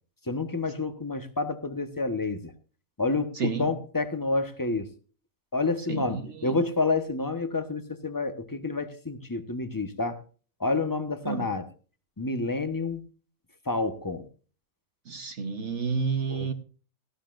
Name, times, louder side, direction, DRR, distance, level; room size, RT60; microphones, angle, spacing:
voice 1, 0.3-2.5 3.0-4.9 5.5-10.2 10.6-11.6 12.2-13.0 13.7-14.2 16.3-16.5, left 3 dB, 15° left, 1.1 m, -29 dB
voice 2, 3.3-3.8 5.9-6.6 11.2-11.6 15.1-16.5, right 5 dB, 60° right, 1.4 m, -31 dB
18.0 x 15.0 x 2.5 m
omnidirectional pair, 1.4 m